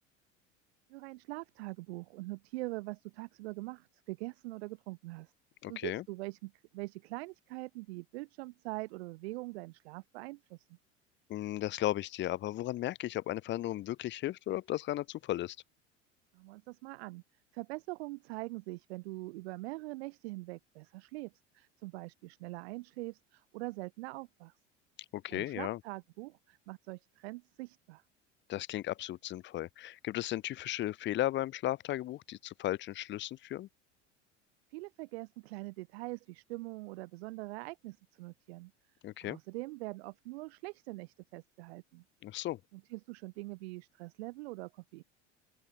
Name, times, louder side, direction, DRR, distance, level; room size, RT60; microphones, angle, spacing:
voice 1, 0.9-5.3 5.7-10.7 16.3-17.2 17.5-24.5 25.3-28.0 34.7-38.7 39.2-42.0 42.7-45.0, right 22 dB, 60° right, 2.0 m, -43 dB
voice 2, 5.6-6.0 11.3-15.6 25.1-25.8 28.5-33.7 39.0-39.4 42.2-42.6, left 14 dB, 30° left, 0.7 m, -35 dB
open air
figure-of-eight pair, 70°, 37 cm